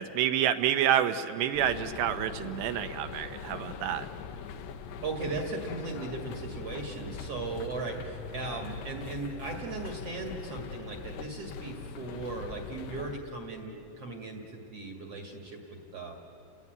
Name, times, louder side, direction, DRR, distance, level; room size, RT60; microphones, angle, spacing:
voice 1, 0.0-4.1, right 10 dB, 75° right, 8 dB, 2.9 m, -28 dB
sound 1, 1.5-13.2, left 6 dB, 75° left, 3.0 m, -41 dB
voice 2, 5.0-16.1, right 3 dB, 45° right, 1 dB, 2.1 m, -37 dB
29.5 x 21.0 x 9.3 m, 2.8 s
omnidirectional pair, 5.2 m